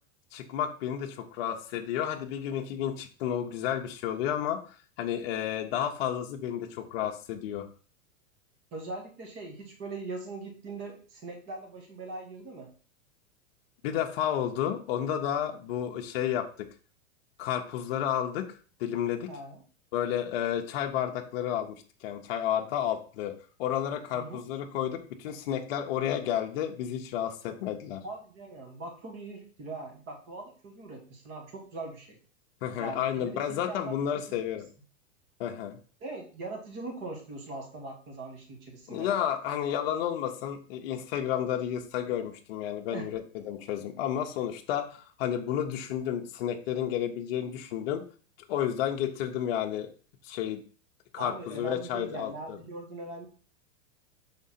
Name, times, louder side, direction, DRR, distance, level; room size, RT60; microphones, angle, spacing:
voice 1, 0.3-7.7 13.8-16.7 17.4-18.5 18.8-19.3 19.9-28.0 32.6-34.7 35.4-35.8 38.9-48.0 48.5-49.9 50.2-50.6 51.1-52.6, left 10 dB, 50° left, 3 dB, 0.8 m, -31 dB
voice 2, 8.7-12.7 19.3-19.6 24.1-24.4 28.0-32.2 32.8-34.4 36.0-39.1 42.9-43.1 51.2-53.3, right 3 dB, 30° right, 2 dB, 1.6 m, -41 dB
6.2 x 3.8 x 4.2 m, 0.39 s
supercardioid pair, 160°, 38 cm